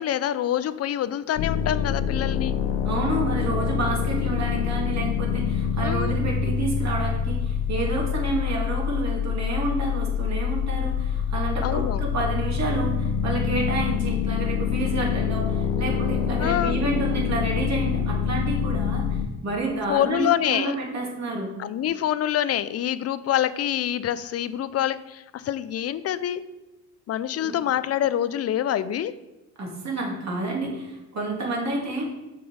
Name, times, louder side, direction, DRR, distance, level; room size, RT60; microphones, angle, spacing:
voice 1, 0.0-2.5 5.8-6.1 11.6-12.0 16.4-16.8 19.9-20.7 21.6-26.5 27.1-29.1, left 11 dB, 40° left, 15 dB, 0.5 m, -26 dB
sound 1, 1.4-19.3, left 7 dB, 75° left, 0.8 m, -26 dB
voice 2, 2.8-21.5 27.4-27.6 29.6-32.1, right 2 dB, 45° right, -2 dB, 2.8 m, -29 dB
7.0 x 4.7 x 4.9 m, 1.1 s
supercardioid pair, 75°, 38 cm